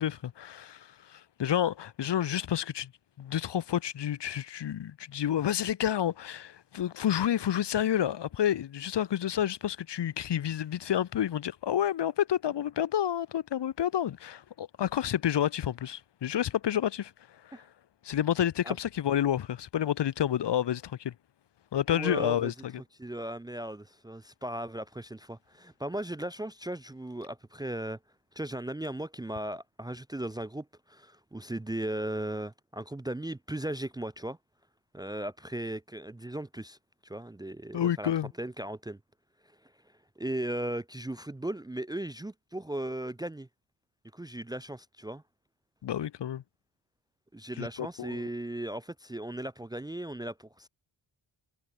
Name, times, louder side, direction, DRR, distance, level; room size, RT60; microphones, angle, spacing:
voice 1, 0.0-2.9 3.2-17.1 17.4-17.6 18.0-21.1 21.7-22.7 37.7-38.3 45.8-46.4 47.6-48.3, left 10 dB, 60° left, 1.4 m, -29 dB
voice 2, 21.9-22.5 23.0-28.0 28.4-34.4 34.9-36.8 37.0-38.1 38.4-39.0 40.2-43.5 44.1-45.2 47.3-50.7, right 1 dB, 10° right, 0.6 m, -37 dB
wide cardioid pair, 140°, 46 cm